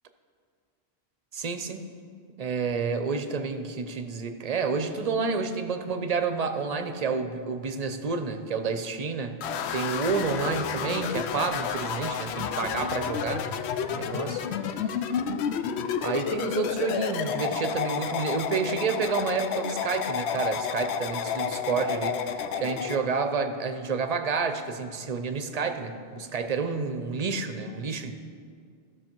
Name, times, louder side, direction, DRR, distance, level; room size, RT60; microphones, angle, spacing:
voice 1, 1.3-1.8 2.4-9.3 9.7-13.4 13.9-14.4 16.0-28.1, right 4 dB, 45° right, 8 dB, 0.7 m, -29 dB
sound 1, 9.4-23.0, left 7 dB, 85° left, 0.8 m, -31 dB
14.5 x 6.5 x 4.5 m, 2.2 s
omnidirectional pair, 1.1 m